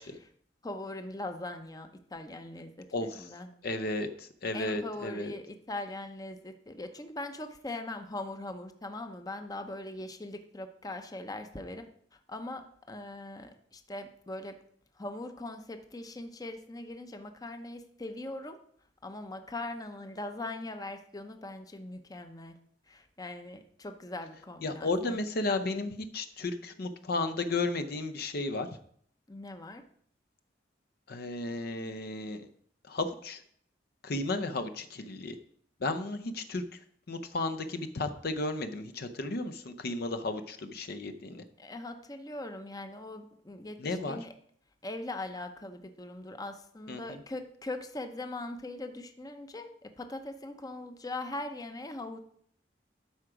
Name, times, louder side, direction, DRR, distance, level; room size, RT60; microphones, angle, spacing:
voice 1, 0.6-3.5 4.5-11.9 12.3-14.6 15.0-18.6 19.0-22.6 22.9-25.2 29.3-29.8 41.6-44.3 44.8-52.2, left 2 dB, 20° left, 7 dB, 0.7 m, -41 dB
voice 2, 2.9-3.3 3.6-5.3 24.6-28.7 31.1-32.5 32.8-33.4 34.0-35.4 35.8-36.6 37.1-41.4 43.8-44.2 46.9-47.2, left 2 dB, 55° left, 9 dB, 0.6 m, -33 dB
12.5 x 4.9 x 4.9 m, 0.62 s
head